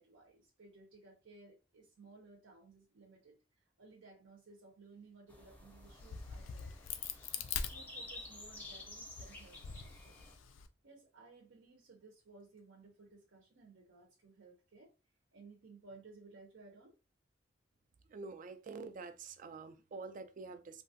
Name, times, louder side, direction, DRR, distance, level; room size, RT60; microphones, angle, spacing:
voice 1, 0.0-14.9 15.3-16.9, right 3 dB, 75° right, 0.7 m, -59 dB
sound 1, 5.3-10.4, left 2 dB, 10° left, 0.6 m, -51 dB
Crack, 5.8-8.5 9.0-10.7, left 7 dB, 75° left, 0.4 m, -43 dB
voice 2, 18.1-20.8, right 4 dB, 45° right, 0.3 m, -47 dB
3.1 x 2.3 x 2.7 m
head